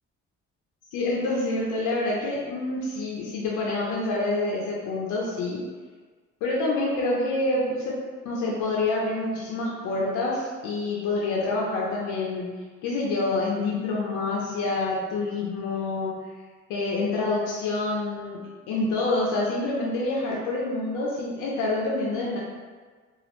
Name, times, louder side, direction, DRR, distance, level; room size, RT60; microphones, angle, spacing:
voice 1, 0.9-5.6 6.4-12.5 12.8-16.1 16.7-18.4 18.7-22.4, left 2 dB, 90° left, -4 dB, 0.5 m, -27 dB
2.3 x 2.0 x 2.9 m, 1.5 s
cardioid pair, 90°, 30 cm